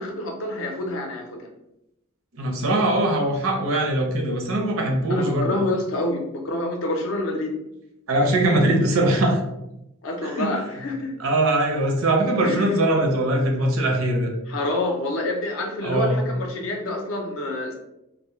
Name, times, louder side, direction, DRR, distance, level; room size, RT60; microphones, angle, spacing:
voice 1, 0.0-1.5 5.1-7.5 10.0-11.1 12.4-12.8 14.5-17.7, left 2 dB, 65° left, 2 dB, 0.5 m, -27 dB
voice 2, 2.4-5.5 8.1-9.4 10.2-10.5 11.2-14.3 15.8-16.2, right 1 dB, 70° right, 2 dB, 0.5 m, -21 dB
2.1 x 2.0 x 2.9 m, 0.86 s
head